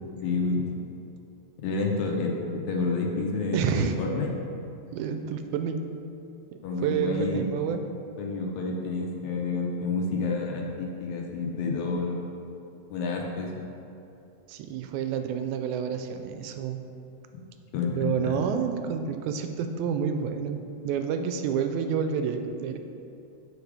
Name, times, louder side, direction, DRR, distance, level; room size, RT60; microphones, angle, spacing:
voice 1, 0.2-0.7 1.6-4.3 6.6-7.5 8.2-12.2 12.9-13.5 17.3-17.4 17.7-18.1, left 3 dB, 75° left, 0 dB, 2.2 m, -29 dB
voice 2, 3.5-4.0 4.9-5.8 6.8-7.8 14.5-16.8 17.9-20.6 20.8-22.8, right 7 dB, 90° right, 7 dB, 2.0 m, -29 dB
7.9 x 5.0 x 4.8 m, 2.7 s
omnidirectional pair, 3.3 m